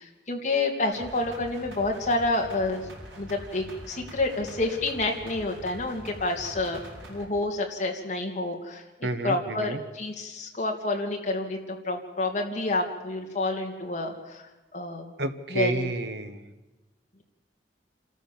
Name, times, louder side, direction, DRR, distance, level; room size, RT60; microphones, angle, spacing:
voice 1, 0.0-2.9 3.2-6.8 7.1-15.1 15.5-15.9, left 2 dB, 40° left, 1 dB, 2.8 m, -29 dB
sound 1, 0.9-7.3, equal, 75° right, 4.9 m, -44 dB
voice 2, 9.0-9.8 15.2-16.4, right 2 dB, 60° right, 8 dB, 1.4 m, -30 dB
27.5 x 13.5 x 7.3 m, 1.1 s
head